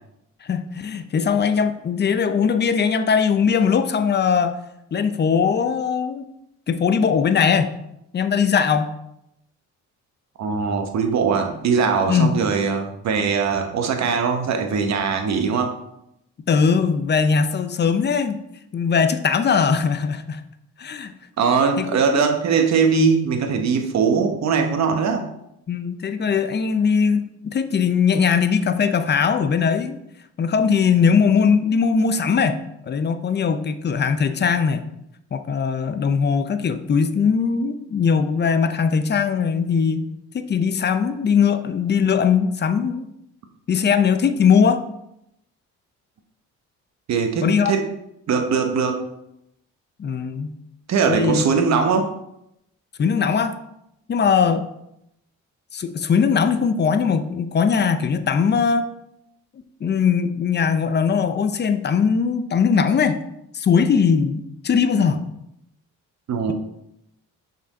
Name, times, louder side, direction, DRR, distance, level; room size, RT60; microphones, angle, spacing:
voice 1, 0.4-4.5 4.9-6.3 6.7-7.8 8.1-8.9 12.1-12.4 16.5-18.4 18.7-20.4 20.8-21.1 21.8-21.9 25.7-30.0 30.4-34.8 35.3-40.1 40.3-43.0 43.7-44.8 47.4-47.7 50.0-50.6 51.1-51.4 53.0-53.5 54.1-54.6 55.7-58.8 59.8-63.2 63.5-65.2, left 6 dB, 35° left, 10 dB, 0.6 m, -20 dB
voice 2, 10.4-15.8 21.4-25.3 47.1-47.9 48.3-49.0 50.9-52.1 66.3-66.5, right 5 dB, 60° right, 5 dB, 1.0 m, -21 dB
6.1 x 4.3 x 4.0 m, 0.81 s
cardioid pair, 90°, 30 cm